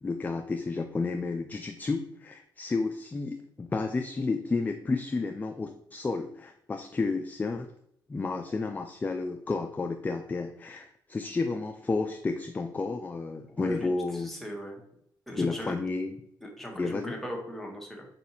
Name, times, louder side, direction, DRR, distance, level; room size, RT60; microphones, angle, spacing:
voice 1, 0.0-7.7 8.1-14.3 15.4-16.2 16.7-17.2, left 3 dB, 20° left, 6 dB, 0.3 m, -31 dB
voice 2, 13.5-13.9 14.2-14.8 15.3-15.7 16.4-18.1, equal, 5° left, -1 dB, 1.1 m, -38 dB
4.7 x 2.6 x 2.8 m, 0.70 s
cardioid pair, 75°, 8 cm